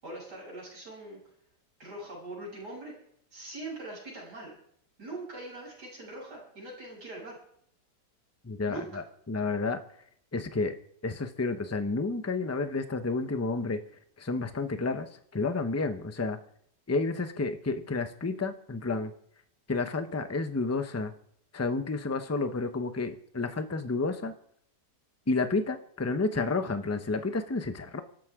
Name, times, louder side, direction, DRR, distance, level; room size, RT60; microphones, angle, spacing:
voice 1, 0.0-1.2 1.8-2.9 3.3-4.5 5.0-7.4 8.7-8.9, right 2 dB, 70° right, -4 dB, 8.8 m, -42 dB
voice 2, 8.4-9.8 10.3-10.7 11.0-13.8 14.2-16.4 16.9-19.1 19.7-21.1 21.5-24.3 25.3-28.0, left 3 dB, 15° left, 8 dB, 0.6 m, -30 dB
24.5 x 13.0 x 3.7 m, 0.66 s
omnidirectional pair, 1.8 m